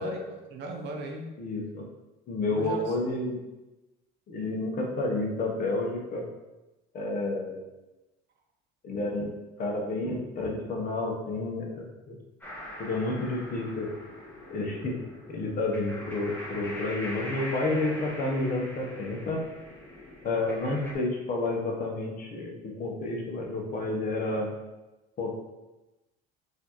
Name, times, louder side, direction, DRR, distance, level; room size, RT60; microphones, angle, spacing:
voice 1, 0.0-1.3 2.5-3.2, right 2 dB, 60° right, 2 dB, 0.7 m, -38 dB
voice 2, 1.4-1.8 2.3-3.4 4.3-6.2 6.9-7.6 8.8-9.3 9.6-12.2 12.8-13.9 14.5-15.0 15.3-19.4 20.2-24.5 25.2-25.4, left 2 dB, 45° left, 0 dB, 0.9 m, -30 dB
sound 1, 12.4-20.9, left 1 dB, 10° left, 1.1 m, -42 dB
4.2 x 2.7 x 2.9 m, 1.0 s
cardioid pair, 105°, 20 cm